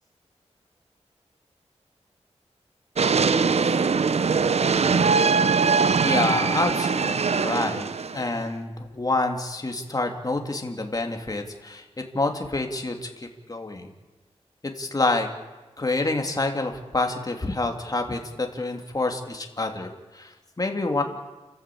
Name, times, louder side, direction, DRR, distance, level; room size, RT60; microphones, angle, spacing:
sound 1, 3.0-8.4, right 5 dB, 65° right, 0.7 m, -22 dB
voice 1, 6.0-7.9 8.1-11.8 12.1-13.9 14.8-15.3 15.8-21.0, left 2 dB, 30° left, 3 dB, 2.9 m, -27 dB
30.0 x 13.5 x 8.6 m, 1.2 s
wide cardioid pair, 95°, 12 cm